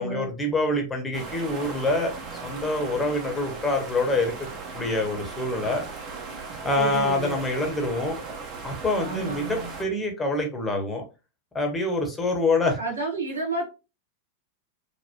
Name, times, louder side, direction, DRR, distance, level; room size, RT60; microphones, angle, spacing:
voice 1, 0.0-2.1 2.4-4.5 4.7-5.8 6.6-8.2 8.6-11.0 11.5-12.8, left 2 dB, 10° left, 2 dB, 0.9 m, -26 dB
sound 1, 1.1-9.8, right 4 dB, 35° right, 1.0 m, -37 dB
voice 2, 6.7-7.5 8.9-9.7 12.6-13.7, right 3 dB, 80° right, -2 dB, 1.3 m, -31 dB
3.9 x 2.1 x 3.0 m, 0.29 s
figure-of-eight pair, 90°, 0 cm